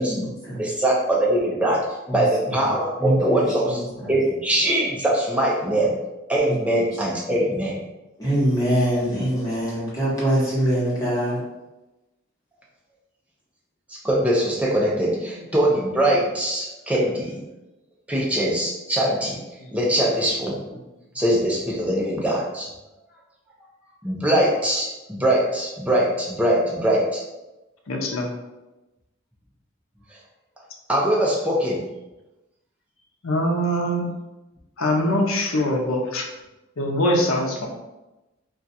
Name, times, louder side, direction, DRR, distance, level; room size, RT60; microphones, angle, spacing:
voice 1, 0.0-0.6 2.1-2.2 3.0-4.1 6.5-6.6 8.2-11.4, equal, 15° left, -8 dB, 1.1 m, -24 dB
voice 2, 0.6-1.9 2.1-5.9 6.3-7.8 13.9-17.4 18.1-19.4 19.7-20.6 21.1-22.7 24.0-27.2 30.9-31.8, right 1 dB, 5° right, -4 dB, 0.5 m, -22 dB
voice 3, 27.9-28.3 33.2-34.1 34.8-36.2 36.8-37.7, equal, 85° left, 2 dB, 0.6 m, -22 dB
2.4 x 2.3 x 4.0 m, 1.0 s
head